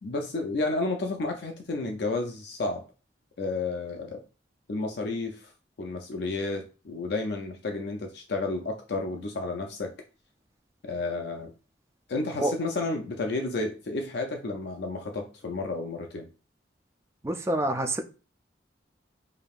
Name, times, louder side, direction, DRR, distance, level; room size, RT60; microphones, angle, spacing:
voice 1, 0.0-2.8 3.4-4.2 4.7-5.5 5.8-9.9 10.8-11.5 12.1-16.3, left 3 dB, 65° left, 0.5 m, -31 dB
voice 2, 17.2-18.0, right 1 dB, 15° right, 0.4 m, -27 dB
5.0 x 2.7 x 2.4 m
head